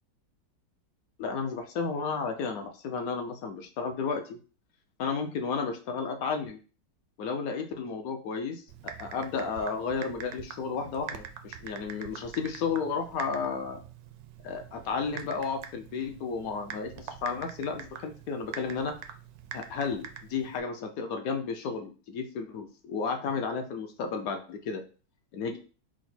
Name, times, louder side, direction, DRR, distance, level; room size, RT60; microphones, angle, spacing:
voice 1, 1.2-4.4 5.0-6.6 7.2-13.8 14.4-18.9 19.5-24.8 25.3-25.6, left 5 dB, 70° left, 6 dB, 0.9 m, -33 dB
Typing, 8.7-20.6, right 8 dB, 75° right, 0.9 m, -45 dB
4.8 x 2.0 x 4.2 m, 0.36 s
omnidirectional pair, 2.0 m